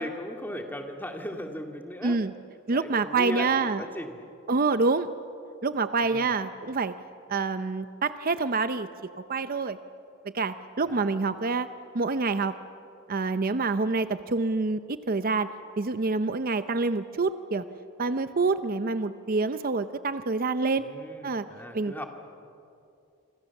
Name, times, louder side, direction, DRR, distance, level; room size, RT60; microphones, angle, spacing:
voice 1, 0.0-2.2 2.7-4.2 6.0-6.3 10.8-11.1 20.8-22.1, equal, 10° left, 3 dB, 2.3 m, -37 dB
voice 2, 2.0-2.3 2.7-3.8 4.5-5.1 5.6-6.9 7.3-9.8 10.3-11.7 11.9-12.5 13.1-15.5 15.8-17.6 18.0-20.8 21.2-21.5 21.7-22.0, right 3 dB, 45° right, 11 dB, 0.7 m, -27 dB
29.0 x 26.0 x 7.2 m, 2.6 s
head